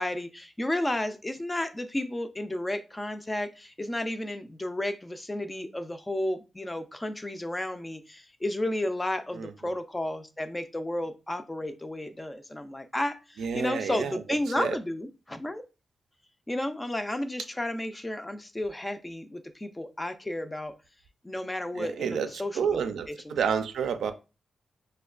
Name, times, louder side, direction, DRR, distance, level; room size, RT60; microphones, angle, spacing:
voice 1, 0.0-15.6 16.5-20.7 21.2-22.8 23.1-23.5, left 1 dB, 15° left, 0.3 m, -32 dB
voice 2, 13.4-14.2 14.6-14.8 21.8-22.3 22.5-24.1, right 7 dB, 90° right, 0.4 m, -29 dB
4.9 x 2.1 x 2.4 m
wide cardioid pair, 120°, 0 cm